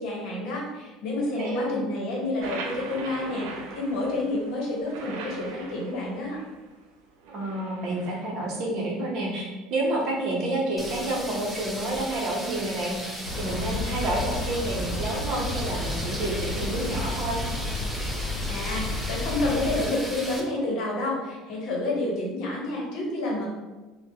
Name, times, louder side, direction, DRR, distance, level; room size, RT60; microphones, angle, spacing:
voice 1, 0.0-3.5 3.7-6.4 18.5-23.5, left 2 dB, 55° left, -2 dB, 0.9 m, -29 dB
voice 2, 1.2-1.8 7.3-17.4, right 1 dB, 50° right, -1 dB, 0.7 m, -29 dB
sound 1, 2.4-6.6 7.2-8.2, right 3 dB, 90° right, 0.5 m, -39 dB
sound 2, 10.8-20.4, equal, ahead, 0.4 m, -36 dB
sound 3, 13.2-19.9, left 2 dB, 85° left, 0.7 m, -31 dB
3.4 x 2.1 x 2.8 m, 1.2 s
cardioid pair, 155°, 0 cm